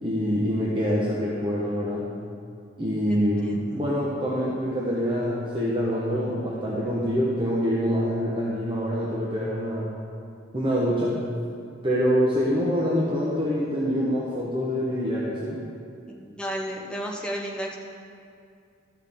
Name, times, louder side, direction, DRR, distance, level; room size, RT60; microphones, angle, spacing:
voice 1, 0.0-2.1 2.8-9.9 10.5-11.2 11.8-15.6, equal, 25° right, -6 dB, 1.0 m, -25 dB
voice 2, 3.1-3.6 16.1-17.8, equal, 5° left, -1 dB, 0.9 m, -33 dB
13.5 x 6.4 x 3.6 m, 2.4 s
head